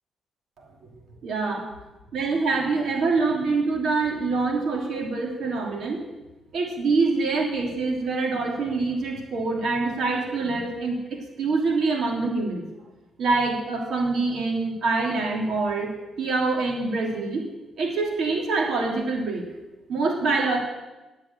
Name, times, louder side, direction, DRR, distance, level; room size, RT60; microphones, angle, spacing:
voice 1, 1.2-1.6 2.1-6.0 6.5-12.6 13.2-15.9 16.2-17.4 17.8-19.4 19.9-20.6, right 3 dB, 60° right, 0 dB, 2.8 m, -25 dB
11.0 x 8.7 x 8.7 m, 1.1 s
cardioid pair, 175°, 0 cm